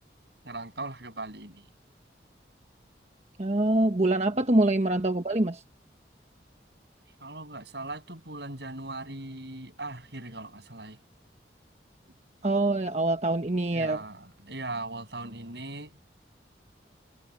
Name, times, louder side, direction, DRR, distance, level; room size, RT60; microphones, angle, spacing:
voice 1, 0.4-1.6 4.3-4.4 7.2-11.0 13.7-16.0, right 2 dB, 70° right, 7.5 m, -39 dB
voice 2, 3.4-5.6 12.4-14.0, right 2 dB, 35° right, 1.2 m, -25 dB
head